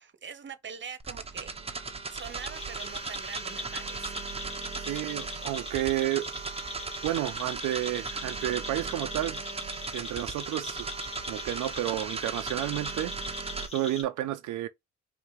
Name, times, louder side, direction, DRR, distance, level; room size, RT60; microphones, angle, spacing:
voice 1, 0.0-4.4, right 7 dB, 40° right, 1.1 m, -44 dB
sound 1, 1.0-13.7, right 4 dB, 20° right, 1.0 m, -37 dB
sound 2, 2.1-14.0, left 3 dB, 20° left, 2.5 m, -42 dB
voice 2, 4.8-6.3 7.0-9.4 9.9-10.9 11.3-14.7, right 14 dB, 80° right, 0.6 m, -31 dB
4.8 x 3.4 x 3.2 m
cardioid pair, 90°, 30 cm